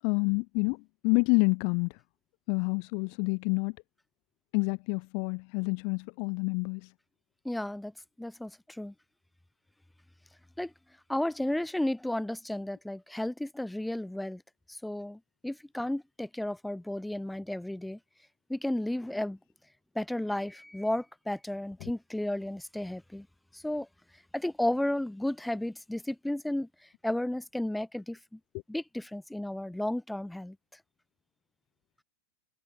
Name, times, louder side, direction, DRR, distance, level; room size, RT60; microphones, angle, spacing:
voice 1, 0.0-1.9 2.5-3.8 4.5-6.9 21.8-21.9, left 40 dB or more, 45° left, 0.5 m, -28 dB
voice 2, 7.4-7.9 8.2-8.9 10.6-10.7 11.1-14.4 14.7-18.0 18.5-19.4 19.9-23.3 23.5-23.9 24.3-26.7 27.0-28.4 28.7-30.6, left 1 dB, 5° left, 0.9 m, -33 dB
figure-of-eight pair, 90°, 0 cm